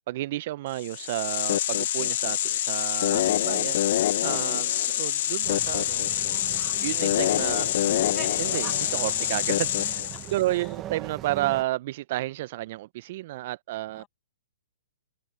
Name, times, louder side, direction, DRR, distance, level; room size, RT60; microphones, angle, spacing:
voice 1, 0.1-6.3 6.8-7.7 8.4-9.9 10.3-14.0, right 16 dB, 50° right, 0.4 m, -31 dB
sound 1, 0.8-10.4, left 13 dB, 55° left, 0.6 m, -26 dB
sound 2, 5.4-11.6, right 13 dB, 25° right, 0.8 m, -41 dB
voice 2, 7.4-8.3 9.9-10.0 10.5-10.8 13.9-14.1, left 16 dB, 25° left, 6.9 m, -56 dB
hypercardioid pair, 140°, 0 cm